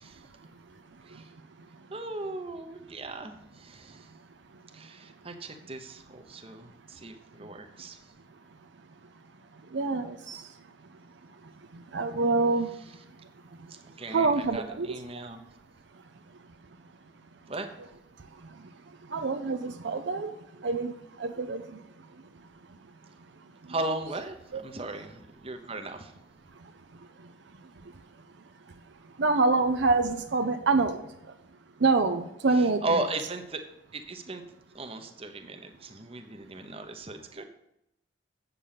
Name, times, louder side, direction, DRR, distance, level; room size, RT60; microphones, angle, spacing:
voice 1, 0.0-1.9 4.0-5.2 6.5-6.6 6.9-7.0 7.4-7.5 8.3-9.1 9.5-15.2 15.9-16.0 16.3-16.5 18.2-23.7 24.5-24.8 26.5-31.4 31.8-33.0, right 3 dB, 65° right, 8 dB, 0.6 m, -30 dB
voice 2, 1.9-4.1 4.7-8.1 13.7-15.4 17.5-17.7 23.7-26.1 32.6-33.6 33.9-34.4 34.7-37.4, right 2 dB, 30° right, 7 dB, 0.9 m, -36 dB
8.4 x 6.9 x 5.7 m, 0.83 s
head